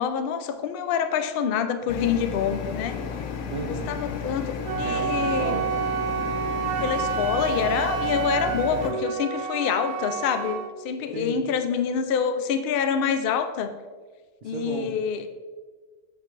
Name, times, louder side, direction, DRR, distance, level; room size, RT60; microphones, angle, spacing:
voice 1, 0.0-3.0 3.9-5.6 6.8-13.8 14.4-15.3, left 7 dB, 90° left, 9 dB, 0.5 m, -26 dB
sound 1, 1.9-8.9, left 6 dB, 60° left, 0.9 m, -33 dB
voice 2, 3.5-4.0 4.8-5.7 11.1-11.5 14.4-15.0, right 5 dB, 65° right, 1 dB, 0.6 m, -34 dB
Wind instrument woodwind instrument, 4.6-10.7, right 7 dB, 80° right, 1.1 m, -29 dB
7.2 x 5.4 x 3.2 m, 1.4 s
omnidirectional pair, 1.6 m